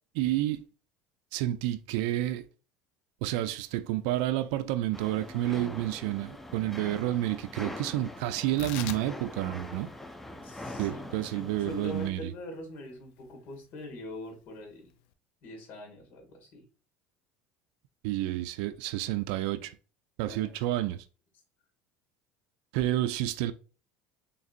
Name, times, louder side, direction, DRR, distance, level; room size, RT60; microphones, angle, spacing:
voice 1, 0.1-0.7 1.3-2.4 3.2-9.9 10.8-12.3 18.0-19.8 20.2-21.0 22.7-23.5, right 14 dB, 75° right, 0.3 m, -30 dB
sound 1, 4.9-12.1, left 1 dB, 5° left, 0.4 m, -43 dB
Tearing, 8.4-15.1, left 11 dB, 75° left, 0.4 m, -46 dB
voice 2, 10.4-14.9 15.4-16.6 20.3-20.5, left 2 dB, 50° left, 2.0 m, -43 dB
3.9 x 3.6 x 2.5 m
supercardioid pair, 125°, 4 cm